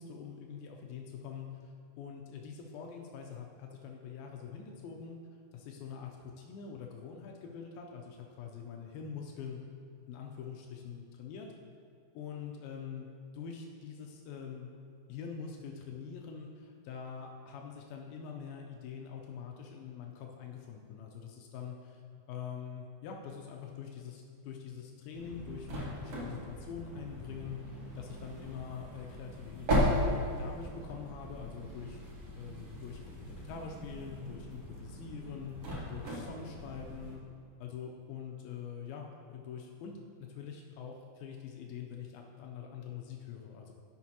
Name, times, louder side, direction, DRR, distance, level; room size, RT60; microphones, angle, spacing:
voice 1, 0.0-5.2 5.5-9.6 10.1-11.5 12.1-13.1 13.3-14.7 15.1-22.0 22.3-30.0 30.4-32.0 32.3-37.2 37.6-40.0 40.3-43.7, left 7 dB, 90° left, 1 dB, 2.1 m, -44 dB
sound 1, 25.1-37.1, equal, 80° right, 1.2 m, -37 dB
10.5 x 6.5 x 2.8 m, 2.2 s
omnidirectional pair, 4.9 m